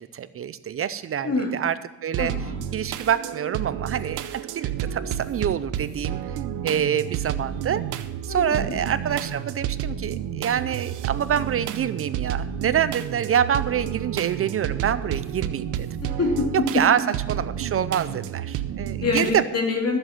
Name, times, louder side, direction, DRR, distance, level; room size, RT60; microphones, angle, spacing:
voice 1, 0.0-6.2 6.6-7.8 8.3-15.9 16.5-19.4, right 9 dB, 50° right, 14 dB, 0.6 m, -26 dB
sound 1, 2.1-19.3, right 10 dB, 90° right, 0.7 m, -31 dB
voice 2, 2.2-2.6 8.3-8.8 16.0-16.4 18.1-18.2 19.0-20.0, left 3 dB, 55° left, 1 dB, 2.9 m, -26 dB
13.5 x 7.8 x 5.9 m, 1.1 s
cardioid pair, 90°, 30 cm